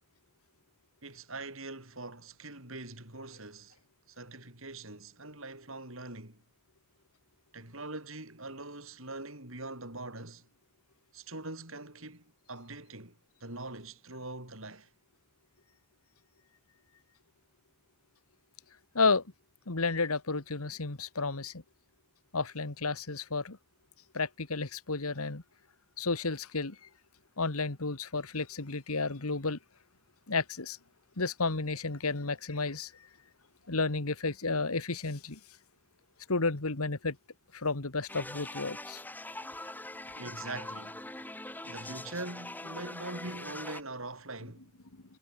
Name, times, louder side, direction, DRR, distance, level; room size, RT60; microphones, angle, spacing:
voice 1, 1.0-3.8 4.1-6.4 7.5-10.5 11.1-14.9 40.1-41.0 41.6-44.7, right 2 dB, 65° right, 7.6 m, -43 dB
voice 2, 19.7-21.6 22.3-23.6 24.1-25.4 26.0-26.9 27.4-29.6 30.3-30.8 31.2-32.9 33.7-35.4 36.3-37.2 37.5-39.0, left 3 dB, 85° left, 1.8 m, -32 dB
sound 1, 38.1-43.8, left 2 dB, 10° left, 3.0 m, -43 dB
head